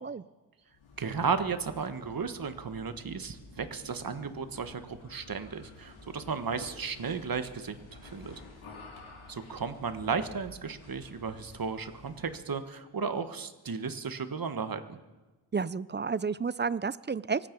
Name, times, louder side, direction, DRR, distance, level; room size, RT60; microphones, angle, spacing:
sound 1, 0.7-12.4, left 3 dB, 80° left, 3.7 m, -51 dB
voice 1, 1.0-8.4 9.3-15.0, right 5 dB, 45° right, 9 dB, 1.5 m, -34 dB
voice 2, 15.5-17.5, right 5 dB, 25° right, 19 dB, 0.4 m, -31 dB
24.5 x 9.0 x 5.4 m, 1.2 s
cardioid pair, 60°, 48 cm